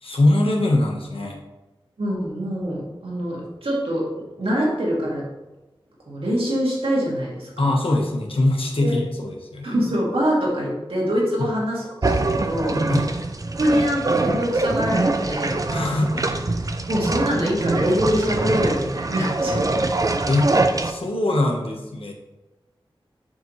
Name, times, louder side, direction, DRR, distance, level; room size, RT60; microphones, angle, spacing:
voice 1, 0.0-1.4 7.6-9.7 12.9-13.1 15.7-16.2 20.3-20.5 20.8-22.1, left 2 dB, 80° left, 1 dB, 1.2 m, -22 dB
voice 2, 2.0-5.3 6.1-7.7 8.8-8.9 9.6-12.9 13.6-15.6 16.9-19.9, equal, 85° right, -5 dB, 2.2 m, -24 dB
sound 1, 12.0-20.9, right 2 dB, 40° right, 0.6 m, -23 dB
7.4 x 5.7 x 3.2 m, 1.1 s
wide cardioid pair, 65°, 9 cm